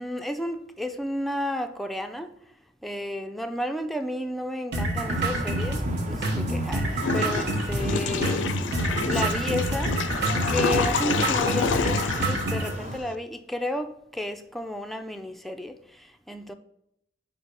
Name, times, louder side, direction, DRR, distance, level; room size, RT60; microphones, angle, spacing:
voice 1, 0.0-2.3 2.8-6.8 7.1-8.4 8.9-10.0 10.4-15.7 16.3-16.5, left 1 dB, ahead, 0.3 m, -32 dB
sound 1, 4.7-12.7, right 1 dB, 60° right, 1.1 m, -27 dB
sound 2, 5.0-13.0, right 2 dB, 40° right, 0.7 m, -38 dB
Water / Toilet flush, 7.0-13.2, left 6 dB, 70° left, 0.4 m, -29 dB
5.1 x 4.0 x 4.6 m
head